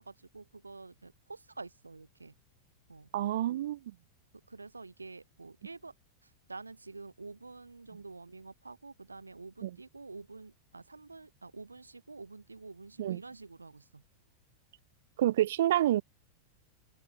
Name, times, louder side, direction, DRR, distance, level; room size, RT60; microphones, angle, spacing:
voice 1, 0.0-2.3 2.9-3.1 4.5-5.9 6.2-14.0, right 3 dB, 80° right, 1.5 m, -48 dB
voice 2, 3.1-3.8 9.6-9.8 13.0-13.2 15.2-16.0, right 13 dB, 60° right, 0.5 m, -28 dB
figure-of-eight pair, 90°, 0 cm